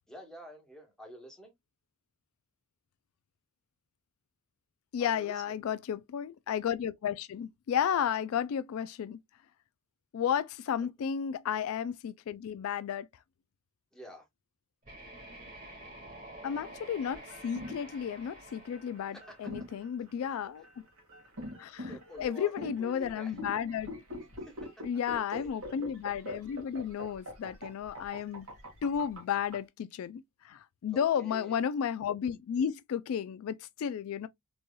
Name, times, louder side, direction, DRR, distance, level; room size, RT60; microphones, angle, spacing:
voice 1, 0.1-1.5 5.0-5.6 13.9-14.3 19.1-19.4 21.6-23.4 24.4-24.7 25.1-25.5 30.9-31.6, equal, 5° left, 1.3 m, -48 dB
voice 2, 4.9-9.2 10.1-13.1 16.4-20.6 21.6-23.9 24.8-28.5 28.8-34.3, left 8 dB, 75° left, 0.3 m, -33 dB
sound 1, 14.8-19.8, right 1 dB, 40° right, 2.1 m, -49 dB
sound 2, 17.1-29.6, left 1 dB, 70° right, 1.8 m, -44 dB
4.0 x 3.1 x 2.2 m
head